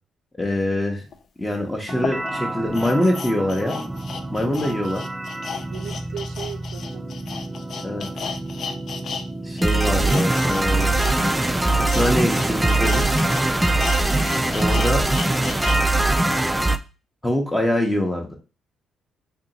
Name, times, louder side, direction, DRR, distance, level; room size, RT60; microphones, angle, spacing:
voice 1, 0.4-1.0 1.4-3.8 4.3-5.0 7.8-8.1 9.4-11.0 11.9-13.2 14.5-15.1 17.2-18.3, left 1 dB, 10° left, 0.7 m, -24 dB
sound 1, 1.1-1.2 1.9-9.3 9.5-15.8 16.2-16.3, left 6 dB, 60° left, 0.4 m, -34 dB
sound 2, 1.9-16.8, right 2 dB, 10° right, 0.3 m, -23 dB
voice 2, 5.7-7.1 14.3-14.6, right 8 dB, 80° right, 0.4 m, -38 dB
2.7 x 2.7 x 3.9 m
cardioid pair, 90°, 0 cm